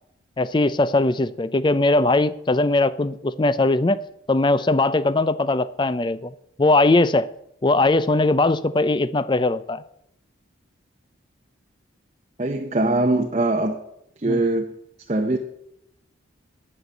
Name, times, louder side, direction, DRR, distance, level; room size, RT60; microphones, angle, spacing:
voice 1, 0.4-4.0 4.3-7.3 7.6-9.8 14.3-14.4, left 2 dB, 25° left, 0.4 m, -20 dB
voice 2, 12.4-13.8 14.2-14.7 15.1-15.4, right 2 dB, 35° right, 0.7 m, -21 dB
9.8 x 7.1 x 9.3 m
head